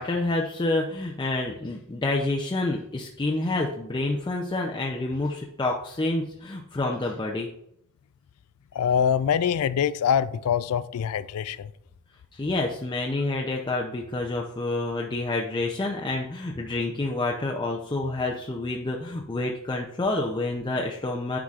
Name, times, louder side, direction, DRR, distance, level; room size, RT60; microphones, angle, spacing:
voice 1, 0.0-7.5 12.3-21.4, left 2 dB, 20° left, 0.5 m, -28 dB
voice 2, 8.7-11.7, left 8 dB, 75° left, 0.3 m, -24 dB
9.5 x 4.8 x 2.4 m
head